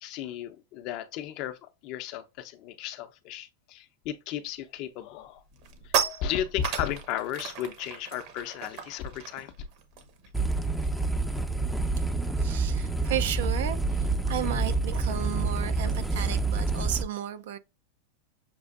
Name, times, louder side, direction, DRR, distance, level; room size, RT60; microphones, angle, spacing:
voice 1, 0.0-5.4 5.8-9.5, left 10 dB, 50° left, 0.7 m, -35 dB
sound 1, 4.5-4.8 5.2-11.1 11.4-11.6 11.9-16.9, right 7 dB, 55° right, 1.1 m, -37 dB
sound 2, 10.3-17.0, right 3 dB, ahead, 0.5 m, -28 dB
voice 2, 12.4-17.6, right 11 dB, 75° right, 0.5 m, -34 dB
6.7 x 2.5 x 2.4 m
supercardioid pair, 130°, 0 cm